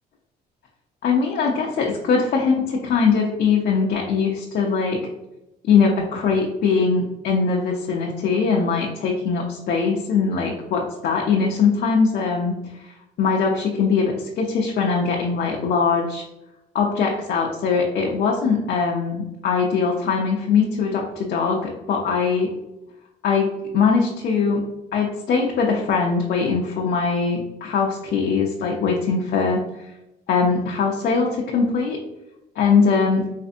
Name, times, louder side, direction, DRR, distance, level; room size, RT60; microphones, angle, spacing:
voice 1, 1.0-5.0 5.6-12.6 13.2-16.2 16.7-22.5 23.2-23.5 23.7-24.6 24.9-29.6 30.3-32.0 32.6-33.2, left 5 dB, 60° left, -1 dB, 0.6 m, -21 dB
4.2 x 2.6 x 2.5 m, 0.92 s
cardioid pair, 110°, 17 cm